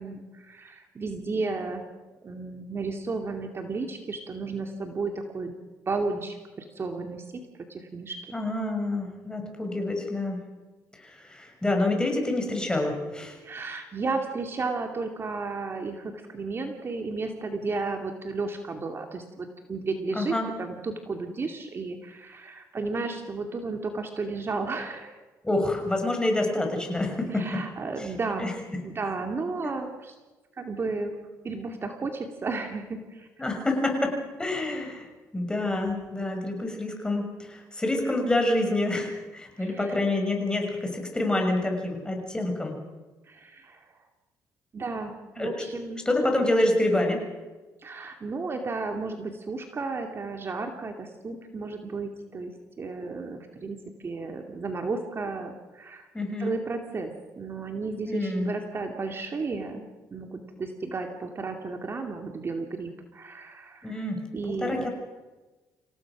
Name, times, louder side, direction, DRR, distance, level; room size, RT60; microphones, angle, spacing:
voice 1, 0.0-1.8 2.2-5.5 5.9-7.2 7.7-8.3 13.4-25.1 27.3-28.6 28.8-30.1 30.6-31.1 31.4-33.3 39.6-40.0 43.3-43.9 44.7-46.1 47.8-52.5 52.8-56.1 56.4-64.1 64.3-64.9, right 3 dB, 40° right, 4 dB, 2.6 m, -33 dB
voice 2, 8.3-10.4 11.0-13.4 20.1-20.5 25.4-27.4 28.4-28.5 33.4-42.7 45.4-45.7 46.0-47.3 56.1-56.5 58.1-58.5 63.8-64.2 64.5-64.9, left 2 dB, 10° left, 3 dB, 6.5 m, -27 dB
27.5 x 17.0 x 6.2 m, 1.2 s
cardioid pair, 90°, 7 cm